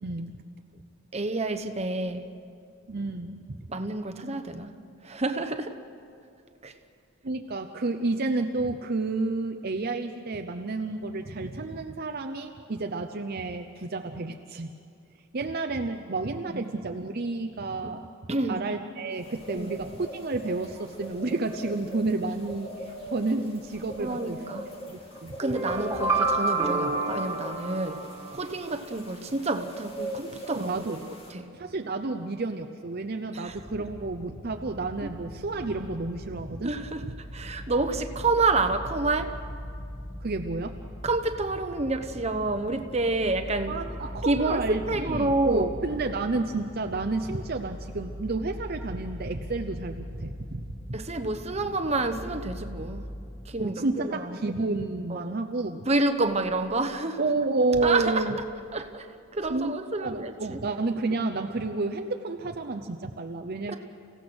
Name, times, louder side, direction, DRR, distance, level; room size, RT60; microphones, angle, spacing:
voice 1, 0.0-0.4 2.9-3.7 7.2-14.7 15.3-18.1 18.5-24.4 24.9-25.4 30.5-31.0 31.5-36.7 40.2-40.7 43.7-51.0 53.6-55.9 57.2-58.4 59.5-63.7, right 3 dB, 50° right, 5 dB, 0.7 m, -30 dB
voice 2, 1.1-2.2 3.7-4.7 5.0-5.8 6.6-6.7 16.5-16.7 18.3-18.7 19.5-19.7 24.0-24.7 25.4-28.0 28.3-31.0 31.3-31.5 33.3-33.6 35.0-35.1 36.6-39.4 41.0-43.8 44.3-45.7 50.9-53.1 53.4-54.4 55.1-55.3 55.9-57.2 57.8-58.4 58.7-59.1 59.3-60.6 63.7-63.8, right 2 dB, 35° right, 7 dB, 1.1 m, -28 dB
sound 1, 19.2-31.3, equal, 30° left, 2.5 m, -41 dB
sound 2, 25.4-28.5, right 3 dB, 15° right, 2.3 m, -28 dB
sound 3, 33.4-53.1, equal, 45° left, 4.9 m, -40 dB
29.5 x 16.5 x 6.3 m, 2.4 s
head